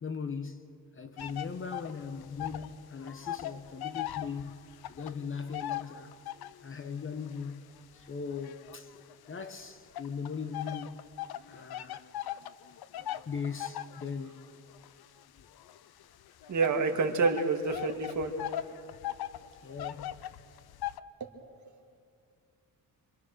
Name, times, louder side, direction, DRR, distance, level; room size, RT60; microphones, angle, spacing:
voice 1, 0.0-6.2 6.6-7.7 7.9-8.9 9.3-11.1 11.5-12.0 13.3-14.4 19.6-20.3, left 5 dB, 35° left, 1.0 m, -39 dB
sound 1, 1.2-2.7 3.0-6.7 7.3-9.3 9.9-21.0, left 12 dB, 75° left, 0.7 m, -40 dB
voice 2, 16.5-18.3 21.2-21.3, right 4 dB, 50° right, 2.2 m, -28 dB
26.0 x 26.0 x 6.7 m
wide cardioid pair, 160°, 38 cm